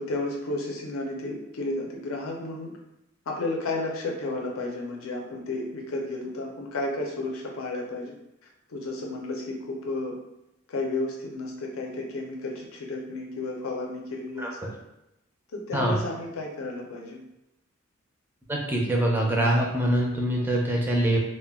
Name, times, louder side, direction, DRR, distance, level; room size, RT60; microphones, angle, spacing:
voice 1, 0.0-2.7 3.3-8.1 8.7-10.2 10.7-14.6 15.5-17.2, left 2 dB, 80° left, 0 dB, 0.5 m, -32 dB
voice 2, 14.4-14.7 15.7-16.0 18.5-21.2, right 1 dB, 10° right, -1 dB, 0.4 m, -24 dB
2.2 x 2.1 x 3.4 m, 0.88 s
head